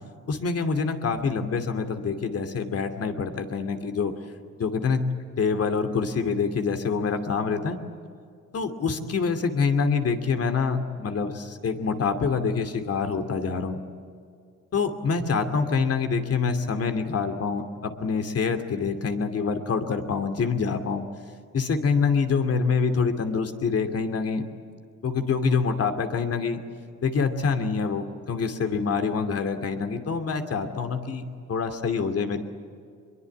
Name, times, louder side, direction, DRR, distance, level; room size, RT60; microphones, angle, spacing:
voice 1, 0.3-4.1 4.6-5.0 5.4-7.8 8.5-13.8 14.7-21.0 21.5-24.4 25.0-26.6 27.0-31.2 31.5-32.4, left 5 dB, 50° left, 7 dB, 2.7 m, -26 dB
23.5 x 22.5 x 8.5 m, 2.3 s
cardioid pair, 90°, 30 cm